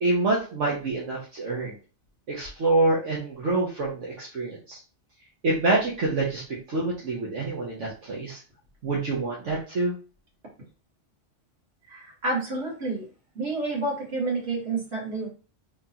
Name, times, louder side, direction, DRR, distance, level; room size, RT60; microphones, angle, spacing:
voice 1, 0.0-1.7 2.3-4.8 5.4-6.4 6.7-8.4 8.8-9.9, right 2 dB, 75° right, -5 dB, 1.4 m, -26 dB
voice 2, 11.9-13.1 13.4-15.3, right 3 dB, 60° right, -3 dB, 2.0 m, -29 dB
3.7 x 3.6 x 2.8 m, 0.36 s
omnidirectional pair, 1.3 m